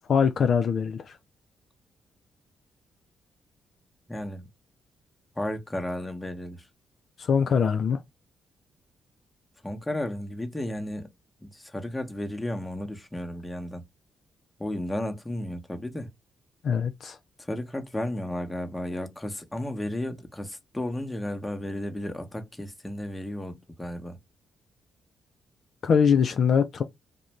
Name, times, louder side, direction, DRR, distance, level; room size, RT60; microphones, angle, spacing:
voice 1, 0.1-1.2 7.2-8.0 16.6-17.2 25.8-26.8, left 6 dB, 60° left, 0.4 m, -23 dB
voice 2, 4.1-4.5 5.4-6.7 9.6-11.1 11.4-13.8 14.6-16.1 17.4-24.2, left 1 dB, 15° left, 0.8 m, -33 dB
2.4 x 2.2 x 3.1 m
supercardioid pair, 55°, 0 cm